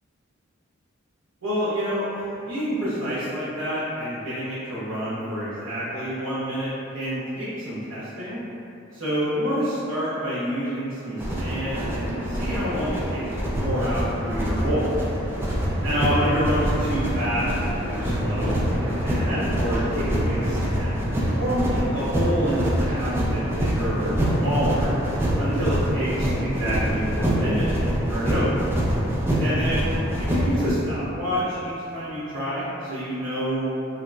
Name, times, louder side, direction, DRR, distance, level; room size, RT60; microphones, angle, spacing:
voice 1, 1.4-8.4 8.9-14.9 15.8-21.0 21.4-24.9 25.4-28.6 29.4-34.0, equal, 70° right, -14 dB, 0.7 m, -28 dB
sound 1, 11.2-30.7, equal, 10° right, 0.3 m, -25 dB
3.7 x 2.0 x 2.3 m, 2.7 s
head